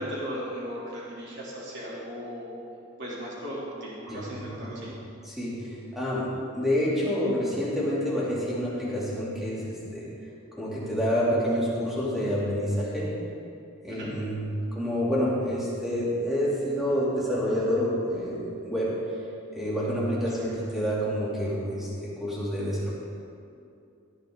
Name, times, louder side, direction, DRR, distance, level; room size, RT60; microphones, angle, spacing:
voice 1, 0.0-2.6 3.0-4.9 13.9-14.1 20.2-20.6, equal, 55° right, -6 dB, 3.2 m, -37 dB
voice 2, 5.2-5.6 5.9-6.3 6.5-10.1 10.6-13.1 13.8-14.3 14.7-18.9 19.5-22.9, equal, ahead, -8 dB, 3.0 m, -28 dB
17.5 x 10.0 x 4.0 m, 2.5 s
head